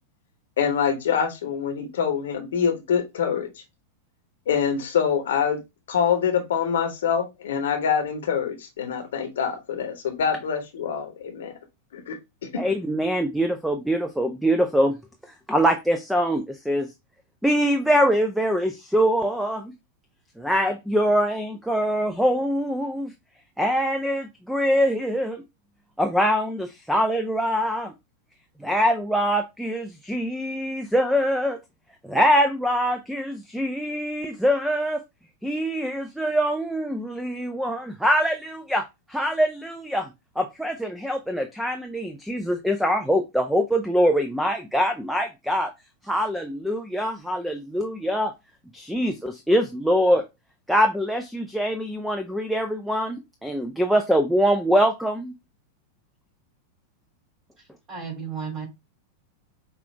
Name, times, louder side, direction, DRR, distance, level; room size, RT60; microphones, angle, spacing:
voice 1, 0.6-3.5 4.5-5.6 5.9-11.5 11.9-12.2 12.4-12.7, left 7 dB, 60° left, 1.0 m, -25 dB
voice 2, 12.6-15.0 15.5-16.9 17.4-19.7 20.4-23.1 23.6-25.4 26.0-27.9 28.6-31.6 32.0-35.0 35.4-40.1 40.4-45.7 46.0-48.3 48.7-50.3 50.7-55.3, equal, ahead, 0.5 m, -23 dB
voice 3, 57.6-58.7, right 6 dB, 20° right, 2.9 m, -34 dB
5.8 x 2.5 x 3.2 m
figure-of-eight pair, 90°, 0 cm